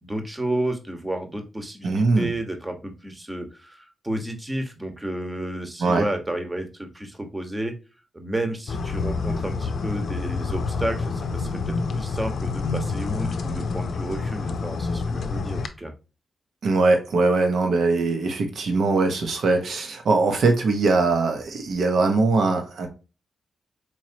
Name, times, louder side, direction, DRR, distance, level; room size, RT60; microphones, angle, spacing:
voice 1, 0.0-7.7 8.1-15.9, right 1 dB, 15° right, 1.1 m, -31 dB
voice 2, 1.8-2.3 5.8-6.0 16.6-22.9, right 3 dB, 70° right, 1.1 m, -21 dB
sound 1, 8.7-15.7, left 4 dB, 70° left, 0.5 m, -28 dB
4.5 x 3.1 x 2.7 m
cardioid pair, 70°, 0 cm